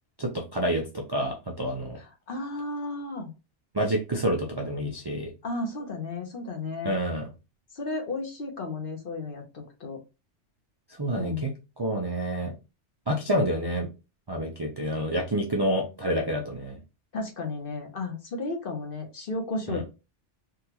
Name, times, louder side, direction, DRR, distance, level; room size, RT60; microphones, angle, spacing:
voice 1, 0.2-2.0 3.7-5.3 6.8-7.2 11.0-11.5 11.8-12.5 13.1-13.9 14.3-16.8 19.7-19.8, equal, 35° right, -1 dB, 0.4 m, -28 dB
voice 2, 2.0-3.3 5.4-6.9 7.7-10.0 11.1-11.5 17.1-19.8, left 2 dB, 55° left, 3 dB, 0.9 m, -33 dB
3.6 x 2.3 x 2.8 m, 0.29 s
omnidirectional pair, 1.2 m